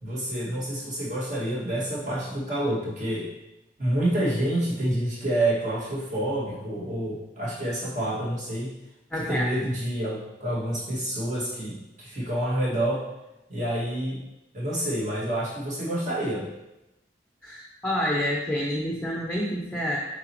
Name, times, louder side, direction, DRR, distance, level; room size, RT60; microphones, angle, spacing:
voice 1, 0.0-3.3 3.8-8.7 9.3-13.0 13.5-14.2 14.5-16.5, right 1 dB, 45° right, -6 dB, 2.1 m, -28 dB
voice 2, 9.1-9.5 17.4-20.0, equal, 5° left, -3 dB, 0.7 m, -28 dB
7.8 x 4.9 x 3.0 m, 0.94 s
head